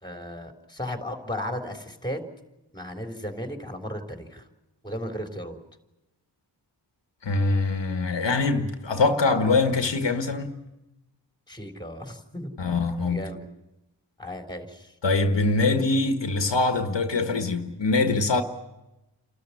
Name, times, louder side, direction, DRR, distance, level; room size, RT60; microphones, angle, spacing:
voice 1, 0.0-2.2 2.7-4.4 4.8-5.6 11.5-12.5 13.1-13.4 14.2-14.9, left 1 dB, 10° left, 3.7 m, -35 dB
voice 2, 7.2-10.6 12.6-13.3 15.0-18.4, left 3 dB, 75° left, 1.6 m, -23 dB
29.0 x 13.5 x 9.9 m
wide cardioid pair, 65°, 44 cm